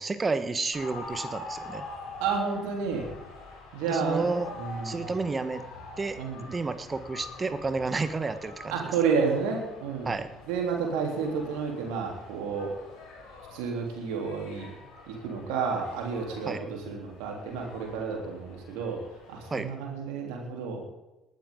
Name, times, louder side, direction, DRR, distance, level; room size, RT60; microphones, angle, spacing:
voice 1, 0.0-1.8 3.9-4.5 4.8-5.6 6.0-6.2 6.5-8.7 10.0-10.3 16.4-16.6 19.5-19.7, right 3 dB, 25° right, 11 dB, 1.4 m, -30 dB
sound 1, 0.7-19.6, left 3 dB, 65° left, 5.8 m, -45 dB
voice 2, 2.2-3.1 3.7-4.2 4.6-5.1 6.2-6.5 8.7-10.2 10.5-12.7 13.5-14.7 15.1-19.0 19.3-20.9, right 5 dB, 70° right, 1 dB, 3.6 m, -30 dB
19.5 x 12.0 x 3.9 m, 1.0 s
figure-of-eight pair, 50°, 0 cm